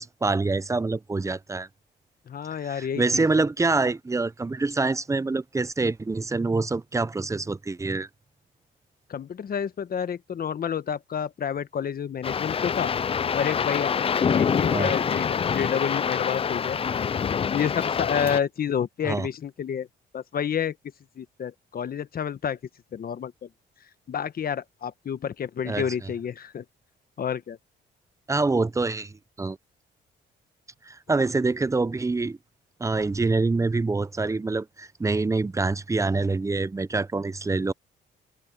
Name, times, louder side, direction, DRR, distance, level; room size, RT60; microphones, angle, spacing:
voice 1, 0.0-1.7 2.7-8.1 14.7-14.9 19.0-19.3 25.7-25.9 28.3-29.6 30.9-32.4 32.8-37.7, right 3 dB, 15° right, 0.6 m, -26 dB
voice 2, 2.3-3.4 9.1-12.9 13.3-13.9 14.2-16.8 17.5-19.9 20.1-20.8 21.2-22.6 22.9-23.5 24.1-26.6 27.2-27.6, left 8 dB, 50° left, 1.2 m, -29 dB
sound 1, 12.2-18.4, left 7 dB, 30° left, 0.4 m, -26 dB
cardioid pair, 90°, 20 cm